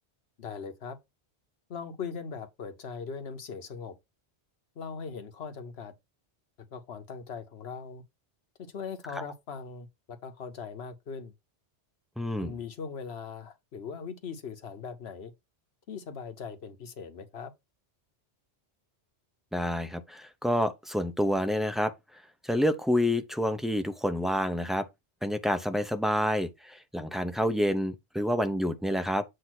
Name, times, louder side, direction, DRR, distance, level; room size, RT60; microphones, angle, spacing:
voice 1, 0.4-1.0 1.7-4.0 4.7-5.9 6.7-8.0 8.6-11.3 12.4-15.3 15.9-17.5, left 6 dB, 70° left, 1.2 m, -40 dB
voice 2, 12.2-12.5 19.5-21.9 22.4-24.8 25.2-29.2, equal, ahead, 0.4 m, -28 dB
7.8 x 2.7 x 6.0 m
omnidirectional pair, 1.1 m